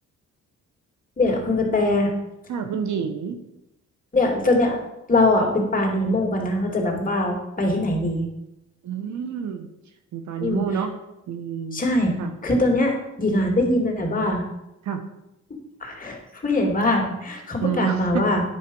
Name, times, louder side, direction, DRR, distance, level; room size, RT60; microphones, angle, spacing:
voice 1, 1.2-2.1 4.1-4.8 5.1-8.2 10.4-10.6 11.7-12.1 12.4-14.4 15.8-18.4, left 2 dB, 25° left, 0 dB, 2.8 m, -22 dB
voice 2, 2.5-3.4 8.8-9.7 10.1-10.9 11.3-11.8 12.2-12.3 14.8-15.0 17.6-18.2, right 7 dB, 70° right, 8 dB, 1.2 m, -28 dB
10.0 x 5.7 x 5.5 m, 0.89 s
cardioid pair, 90°, 30 cm